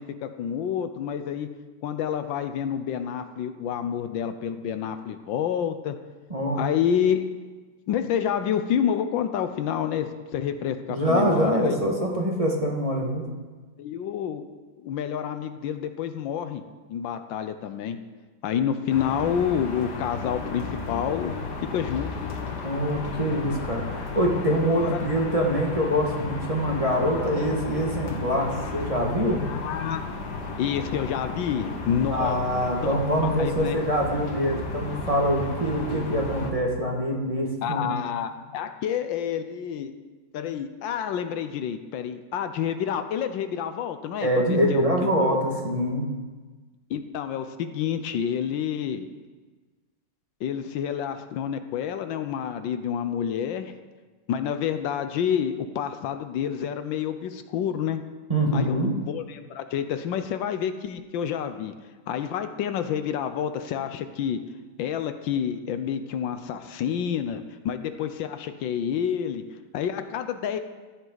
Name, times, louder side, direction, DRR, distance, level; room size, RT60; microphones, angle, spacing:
voice 1, 0.0-1.5 1.8-6.0 6.6-7.3 7.9-11.8 13.8-14.5 14.8-16.6 16.9-18.0 18.4-21.4 21.7-22.1 24.7-25.0 29.4-30.0 30.6-32.4 32.8-33.0 33.4-33.8 37.6-39.9 40.3-45.4 46.9-49.1 50.4-53.7 54.3-58.0 58.5-61.7 62.1-64.4 64.8-70.6, left 8 dB, 80° left, 9 dB, 1.4 m, -28 dB
voice 2, 6.3-6.6 10.9-13.3 22.6-29.4 32.1-37.9 44.2-46.1 58.3-58.9, equal, 20° right, -2 dB, 1.7 m, -24 dB
sound 1, 18.9-36.5, left 4 dB, 60° left, 1.9 m, -34 dB
16.0 x 10.5 x 4.0 m, 1.3 s
omnidirectional pair, 2.1 m